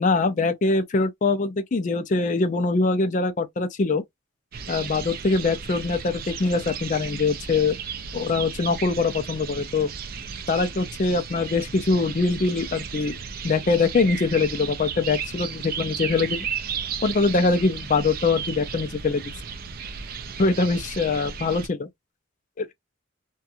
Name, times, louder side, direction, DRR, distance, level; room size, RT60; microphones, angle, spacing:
voice 1, 0.0-4.0 4.7-7.8 8.1-9.9 10.5-13.2 13.4-16.5 17.0-19.2 20.4-21.6 22.6-22.7, left 3 dB, 35° left, 0.4 m, -23 dB
sound 1, 4.5-21.7, right 6 dB, 45° right, 0.4 m, -34 dB
2.4 x 2.3 x 2.7 m
head